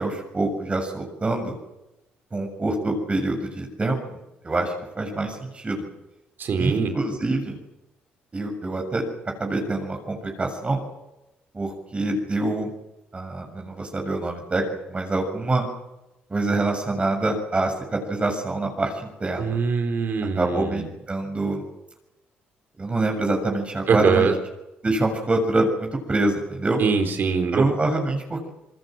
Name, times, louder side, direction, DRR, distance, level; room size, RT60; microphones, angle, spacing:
voice 1, 0.0-1.5 2.3-4.2 4.4-5.9 6.6-7.6 8.3-9.0 9.4-10.8 11.5-12.7 13.1-14.6 14.9-15.7 16.3-19.6 20.4-21.6 22.8-24.3 24.8-26.8 27.5-28.5, right 2 dB, 30° right, 2 dB, 7.0 m, -25 dB
voice 2, 6.4-6.9 19.4-20.8 23.9-24.3 26.8-27.6, right 5 dB, 60° right, 6 dB, 4.3 m, -22 dB
27.5 x 21.0 x 7.7 m, 0.94 s
supercardioid pair, 65°, 4 cm